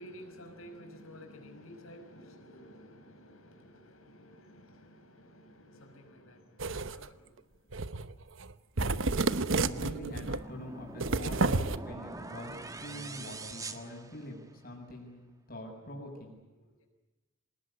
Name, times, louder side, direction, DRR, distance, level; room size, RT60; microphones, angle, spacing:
voice 1, 0.0-7.9 16.8-16.9, equal, 80° left, 6 dB, 5.6 m, -52 dB
sound 1, 6.6-7.1 7.7-8.1 8.4-8.5 8.8-10.4 11.0-11.8, right 3 dB, 65° right, 1.0 m, -30 dB
voice 2, 9.3-16.9, equal, 45° left, 0 dB, 6.9 m, -45 dB
sound 2, 10.1-14.7, right 2 dB, 15° right, 1.6 m, -44 dB
26.0 x 20.0 x 9.9 m, 1.1 s
head